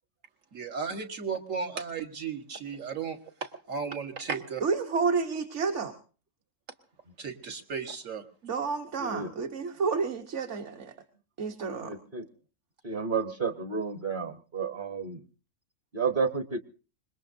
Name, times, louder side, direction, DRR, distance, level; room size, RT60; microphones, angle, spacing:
voice 1, 0.5-4.6 7.2-8.2, right 5 dB, 80° right, 4 dB, 1.9 m, -35 dB
voice 2, 4.6-5.9 8.4-10.9 11.4-11.9, right 5 dB, 65° right, 3 dB, 1.4 m, -30 dB
voice 3, 9.0-9.3 11.8-12.3 12.8-15.2 15.9-16.6, right 5 dB, 45° right, 9 dB, 1.0 m, -31 dB
25.5 x 21.0 x 2.7 m, 0.36 s
omnidirectional pair, 1.3 m